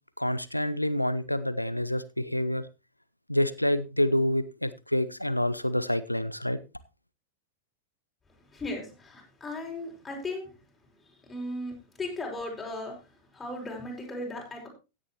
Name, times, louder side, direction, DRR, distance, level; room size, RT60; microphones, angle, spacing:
voice 1, 0.2-2.7 3.3-6.6, left 1 dB, 90° left, 16 dB, 0.7 m, -27 dB
voice 2, 8.5-10.5 11.3-13.0 13.3-14.7, left 2 dB, 15° left, 0 dB, 5.3 m, -36 dB
16.0 x 9.8 x 3.0 m, 0.29 s
figure-of-eight pair, 90°, 0 cm